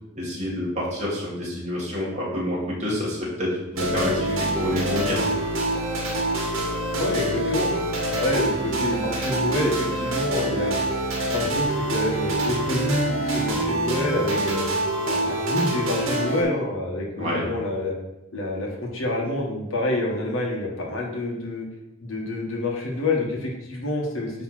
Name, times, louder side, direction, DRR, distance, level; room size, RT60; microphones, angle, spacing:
voice 1, 0.1-5.2 17.2-17.4, left 1 dB, 35° right, -5 dB, 2.2 m, -28 dB
sound 1, 3.7-16.4, right 1 dB, 75° right, 1.8 m, -25 dB
voice 2, 6.9-7.7 8.1-10.8 11.2-14.6 15.1-17.9 18.3-21.7 22.0-24.3, left 1 dB, 80° left, -1 dB, 1.7 m, -27 dB
9.2 x 3.5 x 4.4 m, 0.92 s
head